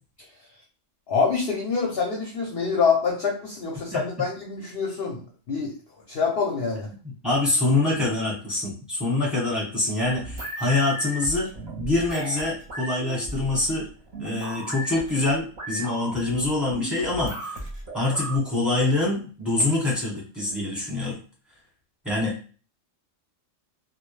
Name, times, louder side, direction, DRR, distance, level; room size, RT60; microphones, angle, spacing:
voice 1, 1.1-5.7 6.1-6.9, left 5 dB, 60° left, -1 dB, 0.7 m, -26 dB
voice 2, 7.0-11.5 11.8-13.9 14.2-17.6 17.9-21.2 22.0-22.6, left 2 dB, ahead, -5 dB, 0.9 m, -25 dB
sound 1, 10.0-18.4, right 1 dB, 45° right, 0.7 m, -36 dB
2.3 x 2.1 x 3.1 m, 0.39 s
omnidirectional pair, 1.4 m